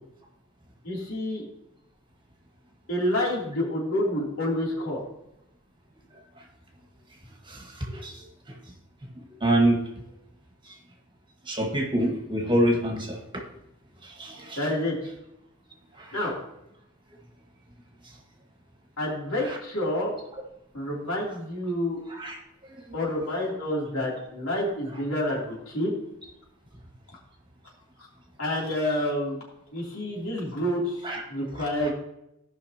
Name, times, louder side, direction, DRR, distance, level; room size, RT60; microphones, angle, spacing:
voice 1, 0.8-1.4 2.9-5.0 14.5-15.1 16.1-16.3 19.0-20.1 20.7-22.0 22.9-26.0 28.0-28.1 28.4-29.4 29.7-31.9, left 1 dB, 80° left, -4 dB, 3.2 m, -28 dB
voice 2, 7.5-8.2 9.2-9.8 11.5-13.2 14.0-14.6 16.0-16.1 22.2-22.4 31.0-31.2, right 1 dB, 25° right, 0 dB, 1.7 m, -26 dB
17.0 x 5.7 x 2.9 m, 0.83 s
head